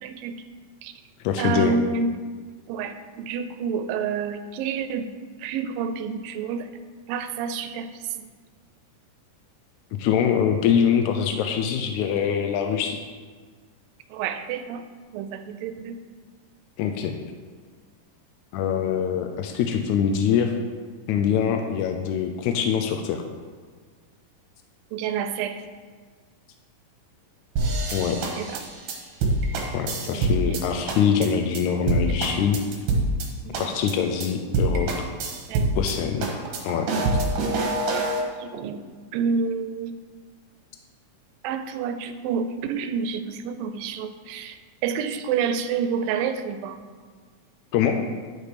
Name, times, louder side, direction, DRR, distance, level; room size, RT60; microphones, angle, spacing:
voice 1, 0.0-0.4 0.8-0.9 1.4-2.1 2.7-5.1 5.4-6.7 7.1-8.2 14.1-14.8 15.1-16.0 24.9-25.6 28.4-28.7 30.1-30.6 33.4-33.7 35.5-35.7 38.1-38.8 39.1-40.0 41.4-46.8, right 6 dB, 85° right, 9 dB, 2.3 m, -29 dB
voice 2, 1.2-1.8 10.0-13.0 16.8-17.1 18.5-20.5 21.1-23.2 27.9-28.2 29.7-32.6 33.6-34.9 35.8-36.3 36.6-36.9 47.7-48.0, left 8 dB, 85° left, 5 dB, 1.7 m, -23 dB
sound 1, 27.6-30.6 30.9-31.3 31.5-31.6 31.9-33.3 33.5-33.9 34.2-34.3 34.5-35.9 36.2-38.2, right 2 dB, 70° right, 2.7 m, -25 dB
11.0 x 5.2 x 5.0 m, 1.6 s
omnidirectional pair, 4.0 m